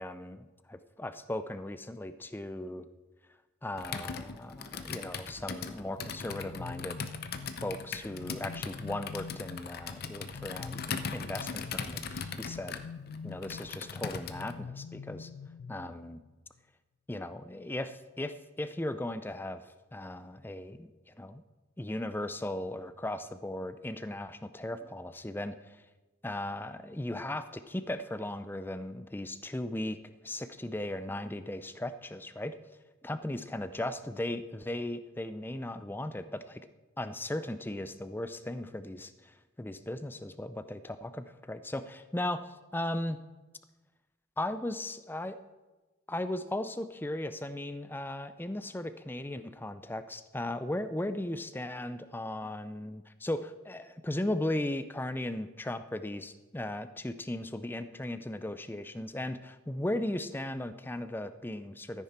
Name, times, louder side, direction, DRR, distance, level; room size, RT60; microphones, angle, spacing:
voice 1, 0.0-2.9 3.6-7.0 7.6-12.8 13.2-15.3 15.7-16.2 17.1-21.4 21.8-25.8 26.2-32.6 33.0-36.7 37.0-43.2 44.4-45.4 46.1-62.0, left 1 dB, 10° left, 11 dB, 0.5 m, -37 dB
Computer keyboard, 3.8-14.6, left 5 dB, 50° left, 0.7 m, -39 dB
sound 1, 6.0-16.3, left 5 dB, 85° left, 0.4 m, -46 dB
13.5 x 9.7 x 4.3 m, 1.2 s
head